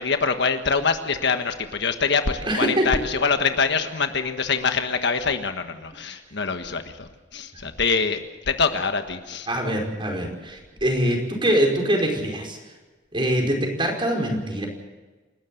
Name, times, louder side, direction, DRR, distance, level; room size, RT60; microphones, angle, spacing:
voice 1, 0.0-8.2 8.5-9.5, left 5 dB, 60° left, 7 dB, 1.5 m, -24 dB
voice 2, 2.4-2.8 6.0-6.1 9.5-12.6 13.1-14.7, right 1 dB, 25° right, 1 dB, 5.0 m, -23 dB
28.5 x 13.0 x 7.8 m, 1.2 s
head